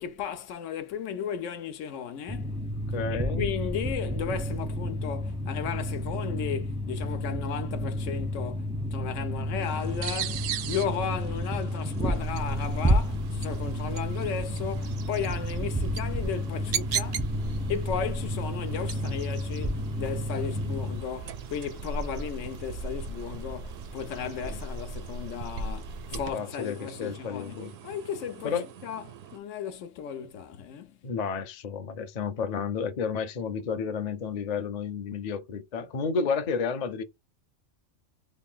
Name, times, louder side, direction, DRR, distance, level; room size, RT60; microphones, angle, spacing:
voice 1, 0.0-2.6 3.1-17.3 17.7-31.0, left 7 dB, 80° left, 1.0 m, -35 dB
sound 1, 2.3-21.0, equal, 5° right, 0.5 m, -31 dB
voice 2, 2.9-3.5 24.4-24.6 26.1-27.7 28.4-28.7 31.0-37.0, left 5 dB, 50° left, 0.5 m, -31 dB
sound 2, 9.6-29.4, right 10 dB, 80° right, 0.9 m, -43 dB
sound 3, 12.2-26.3, right 4 dB, 55° right, 0.5 m, -38 dB
3.3 x 2.3 x 3.6 m
omnidirectional pair, 1.3 m